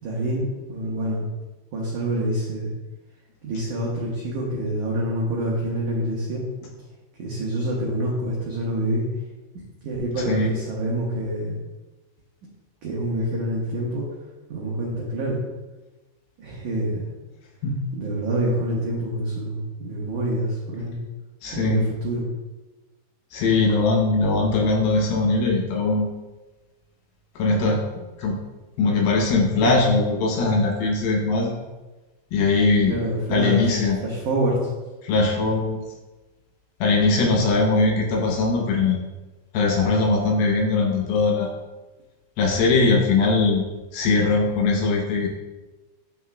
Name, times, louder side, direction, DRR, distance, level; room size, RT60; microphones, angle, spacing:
voice 1, 0.0-1.3 1.7-2.7 3.4-6.5 7.2-9.1 9.8-11.6 12.8-14.1 14.5-15.4 16.4-17.1 17.9-21.0 21.5-22.2 32.8-34.6, right 1 dB, 85° right, -4 dB, 1.6 m, -26 dB
voice 2, 21.4-21.8 23.3-26.1 27.4-27.8 28.2-28.4 28.8-31.6 32.3-33.0 33.3-34.0 35.0-35.8 36.8-39.0 39.5-41.5 42.4-43.7 43.9-45.3, left 3 dB, 75° left, 0 dB, 2.3 m, -20 dB
8.7 x 5.7 x 2.2 m, 1.2 s
omnidirectional pair, 4.9 m